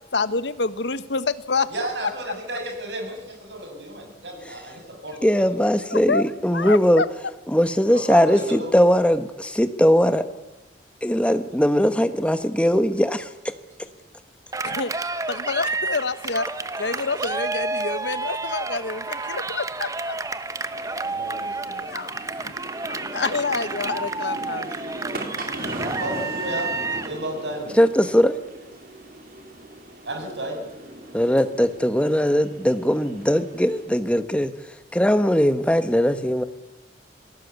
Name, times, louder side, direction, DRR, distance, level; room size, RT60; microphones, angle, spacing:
voice 1, 0.1-1.7 5.9-6.2 6.5-7.1 14.6-14.9 15.3-16.5 16.8-20.2 21.7-22.5 22.8-24.9, left 4 dB, 75° left, 13 dB, 1.2 m, -27 dB
voice 2, 1.7-5.8 8.1-8.7 21.0-22.0 25.8-27.8 30.0-30.6, right 1 dB, 75° right, 3 dB, 7.0 m, -33 dB
voice 3, 5.2-7.0 7.5-10.3 11.0-13.5 27.8-28.4 31.1-34.5 34.9-36.4, equal, 5° left, 10 dB, 1.2 m, -20 dB
Cheering, 14.5-27.2, right 3 dB, 20° right, 0.9 m, -30 dB
sound 1, 20.5-34.0, right 1 dB, 55° right, 4.1 m, -39 dB
27.0 x 19.0 x 8.2 m, 1.1 s
head